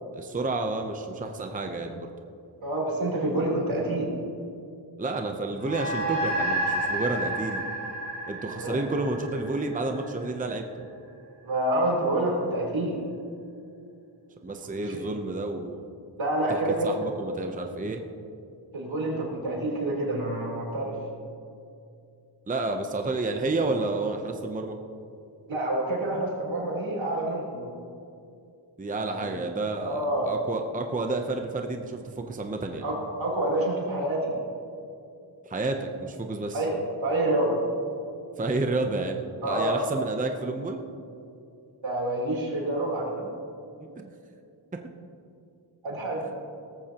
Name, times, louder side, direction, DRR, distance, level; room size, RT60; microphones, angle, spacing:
voice 1, 0.1-1.9 5.0-7.6 8.3-10.6 14.4-15.8 16.5-18.0 22.5-24.8 28.8-32.9 35.4-36.6 38.4-40.8 43.2-43.4 43.8-44.1 44.7-44.8, right 2 dB, 15° right, 4 dB, 0.7 m, -30 dB
voice 2, 2.6-4.1 8.6-8.7 11.4-13.0 14.9-15.0 16.2-16.9 18.7-20.9 25.5-27.7 29.1-29.4 29.8-30.3 32.8-34.3 36.5-36.7 37.0-37.6 39.4-39.8 41.8-43.2 45.8-46.3, right 1 dB, 75° right, -3 dB, 3.7 m, -27 dB
sound 1, 5.6-10.3, right 1 dB, 45° right, 3.7 m, -30 dB
18.5 x 14.0 x 2.9 m, 2.6 s
wide cardioid pair, 135°, 46 cm